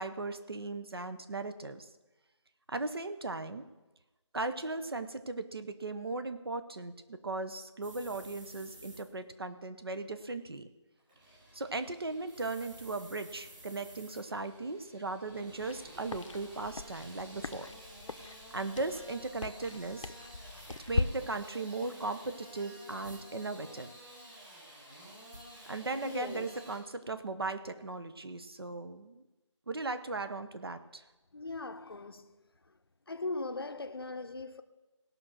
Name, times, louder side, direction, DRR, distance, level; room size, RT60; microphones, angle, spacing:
voice 1, 0.0-1.9 2.7-3.7 4.3-10.7 11.5-17.7 18.2-20.1 20.9-23.9 25.7-29.2 29.7-31.0, right 3 dB, 50° right, 0.9 m, -37 dB
sound 1, 7.8-9.1 12.3-14.3 17.9-18.1 20.6-20.9 23.0-23.3 25.3-25.4, right 1 dB, 90° right, 2.2 m, -53 dB
Engine starting / Sawing, 11.0-26.8, equal, 15° right, 3.1 m, -52 dB
sound 2, 15.5-21.0, left 3 dB, 80° left, 0.8 m, -39 dB
voice 2, 26.0-26.5 31.3-32.4 33.1-34.6, left 3 dB, 50° left, 0.7 m, -39 dB
17.0 x 6.1 x 6.5 m
figure-of-eight pair, 175°, 16 cm